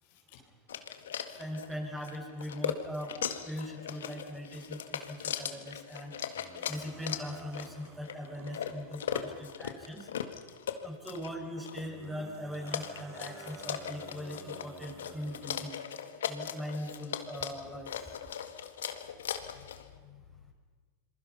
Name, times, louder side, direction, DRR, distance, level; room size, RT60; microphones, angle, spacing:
voice 1, 0.0-0.4 1.3-1.4 19.2-20.5, left 10 dB, 65° left, 3 dB, 4.3 m, -56 dB
sound 1, 0.7-19.9, left 9 dB, 85° left, 1.8 m, -39 dB
voice 2, 1.4-3.1 3.4-6.1 6.7-10.1 10.8-15.7 16.2-17.9, equal, 5° right, 1 dB, 6.5 m, -40 dB
sound 2, 6.3-9.8 11.8-15.7, right 7 dB, 30° right, 1.7 m, -53 dB
28.0 x 22.0 x 5.7 m, 1.5 s
hypercardioid pair, 105°, 0 cm